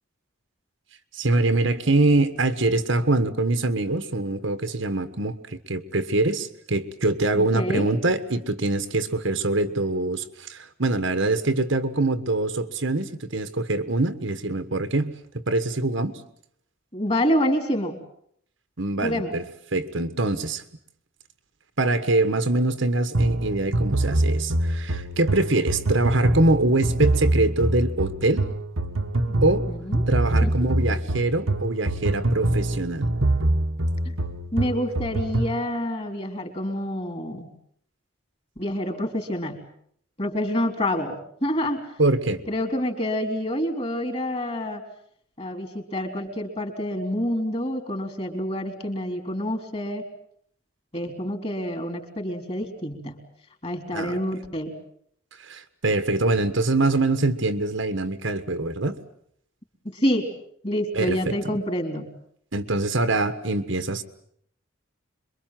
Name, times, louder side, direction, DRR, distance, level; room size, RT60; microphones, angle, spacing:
voice 1, 1.1-15.2 15.5-16.2 18.8-19.4 19.7-20.6 21.8-28.5 29.4-29.7 30.1-33.1 42.0-42.4 53.9-54.2 55.4-59.0 60.9-61.6 62.5-64.0, right 2 dB, 65° right, 9 dB, 1.5 m, -24 dB
voice 2, 7.3-7.9 16.9-18.0 19.0-19.3 29.3-30.0 30.4-30.5 34.1-34.2 34.5-37.5 38.6-39.6 40.2-41.9 42.5-44.8 45.4-50.0 50.9-53.2 53.6-54.7 59.8-60.3 60.6-62.1, equal, 30° left, 5 dB, 3.8 m, -27 dB
sound 1, 23.1-35.6, right 1 dB, 80° right, 1.6 m, -24 dB
26.5 x 23.0 x 7.6 m, 0.68 s
head